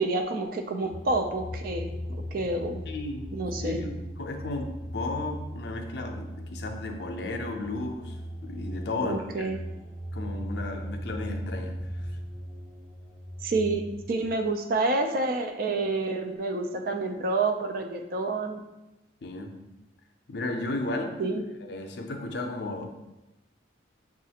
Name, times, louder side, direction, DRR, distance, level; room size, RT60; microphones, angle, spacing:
voice 1, 0.0-2.8 3.3-3.8 9.0-9.6 13.4-18.6 21.2-21.4, right 3 dB, 50° right, 5 dB, 0.4 m, -28 dB
sound 1, 0.8-14.2, equal, ahead, 0.7 m, -38 dB
voice 2, 2.9-3.3 3.6-8.2 8.4-9.5 10.1-11.8 19.2-19.5 20.3-21.2 21.6-22.9, left 2 dB, 60° left, 4 dB, 0.5 m, -34 dB
6.2 x 2.4 x 2.8 m, 0.98 s
head